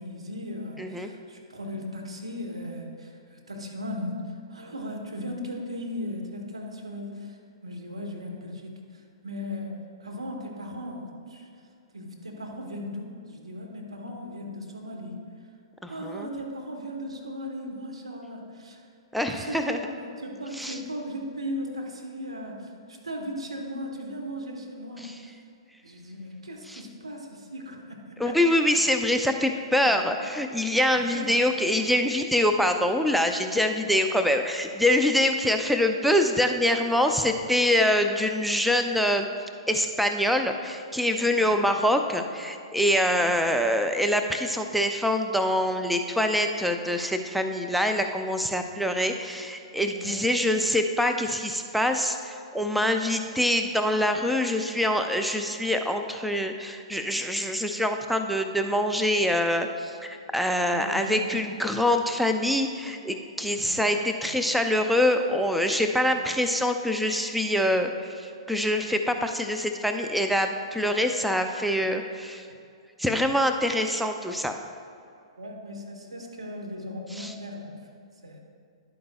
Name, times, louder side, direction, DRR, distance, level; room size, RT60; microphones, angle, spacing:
voice 1, 0.0-11.5 11.9-15.2 15.9-18.8 19.3-25.3 25.8-28.4 29.7-30.1 31.1-31.3 32.6-32.8 34.0-34.1 34.5-34.6 35.4-35.5 37.9-38.1 41.3-41.6 43.1-43.3 49.0-49.1 49.9-50.5 53.2-53.3 60.7-61.5 63.6-63.8 64.2-64.4 66.1-66.2 75.4-77.8 78.2-78.4, equal, 90° right, 1 dB, 1.3 m, -37 dB
voice 2, 0.8-1.1 15.8-16.3 19.1-19.8 20.5-20.8 25.0-25.1 26.7-26.8 28.2-39.3 39.7-72.5 73.0-74.5 77.1-77.3, left 1 dB, ahead, 5 dB, 0.4 m, -25 dB
11.0 x 8.5 x 2.3 m, 2.4 s
hypercardioid pair, 120°, 3 cm